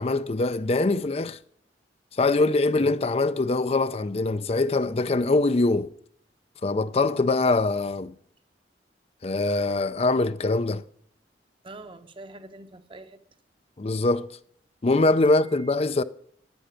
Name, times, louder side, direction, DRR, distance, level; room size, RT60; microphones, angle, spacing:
voice 1, 0.0-1.4 2.2-5.9 6.6-8.1 9.2-10.8 13.8-14.3 14.8-16.0, left 2 dB, 35° left, 0.5 m, -23 dB
voice 2, 11.6-13.2 15.2-15.7, right 2 dB, 30° right, 0.9 m, -45 dB
11.5 x 10.0 x 9.0 m
head